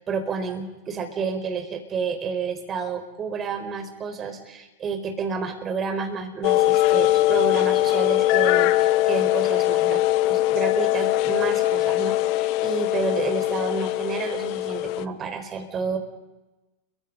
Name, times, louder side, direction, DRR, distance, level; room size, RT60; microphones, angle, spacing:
voice 1, 0.0-16.0, right 5 dB, 30° right, 7 dB, 4.7 m, -30 dB
sound 1, 6.4-15.1, left 15 dB, 50° left, 1.0 m, -21 dB
29.5 x 24.0 x 5.4 m, 1.0 s
figure-of-eight pair, 90°, 0 cm